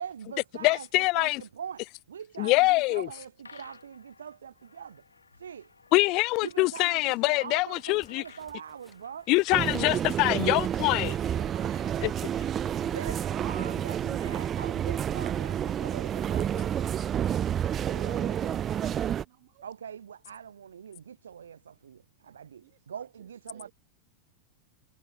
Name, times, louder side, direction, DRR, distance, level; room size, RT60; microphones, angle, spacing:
voice 1, 0.0-5.0 5.4-5.7 6.4-9.3 11.2-11.5 12.8-16.7 17.9-19.1 19.6-23.7, right 8 dB, 70° right, 2.2 m, -43 dB
voice 2, 0.6-1.4 2.4-3.1 5.9-8.2 9.3-11.1, left 23 dB, 40° left, 0.5 m, -24 dB
sound 1, 3.4-14.6, left 4 dB, 75° left, 5.1 m, -57 dB
sound 2, 7.8-13.5, right 2 dB, 5° right, 4.7 m, -61 dB
sound 3, 9.5-19.2, right 9 dB, 25° right, 0.3 m, -29 dB
voice 3, 11.0-12.2 12.9-14.2 15.3-19.7 22.6-23.7, right 20 dB, 50° right, 7.3 m, -54 dB
figure-of-eight pair, 90°, 0 cm